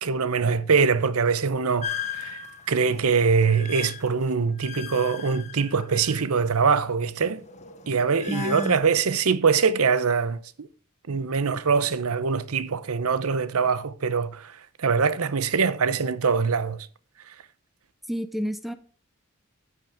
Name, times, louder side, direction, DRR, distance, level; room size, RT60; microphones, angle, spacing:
voice 1, 0.0-2.4 2.7-7.4 7.9-10.7 11.1-16.9, right 5 dB, 85° right, 0.8 m, -23 dB
sound 1, 1.8-6.5 6.8-8.8, left 8 dB, 35° left, 1.0 m, -38 dB
voice 2, 8.3-8.8 18.1-18.7, equal, ahead, 0.6 m, -30 dB
10.5 x 8.0 x 3.6 m
head